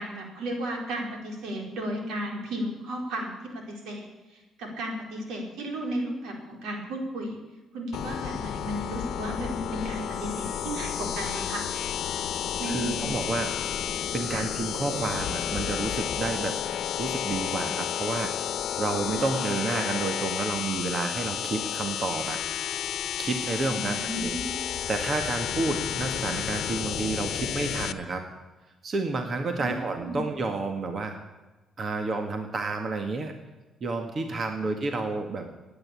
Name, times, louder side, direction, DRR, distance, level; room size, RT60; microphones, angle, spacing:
voice 1, 0.0-7.4 7.7-11.7 12.6-13.2 14.3-14.4 19.1-19.5 23.6-24.6 29.6-30.2 34.5-34.6, right 1 dB, 90° right, 2 dB, 4.4 m, -34 dB
sound 1, 7.9-27.9, left 10 dB, 75° left, 1.0 m, -31 dB
voice 2, 12.7-13.5 14.1-16.6 17.0-18.3 18.8-22.4 23.2-24.3 24.9-28.2 28.8-31.2 31.8-33.3 33.8-35.4, right 3 dB, 45° right, 5 dB, 1.9 m, -30 dB
17.0 x 9.8 x 8.5 m, 1.1 s
cardioid pair, 90°, 0 cm